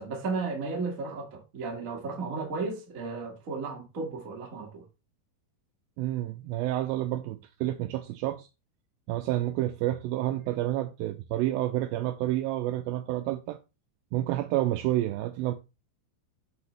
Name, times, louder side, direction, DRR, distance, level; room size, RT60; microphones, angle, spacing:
voice 1, 0.0-4.8, right 4 dB, 60° right, 0.8 m, -34 dB
voice 2, 6.0-8.5 9.1-13.6 14.1-15.5, right 14 dB, 85° right, 2.1 m, -29 dB
8.2 x 6.2 x 3.2 m
omnidirectional pair, 4.7 m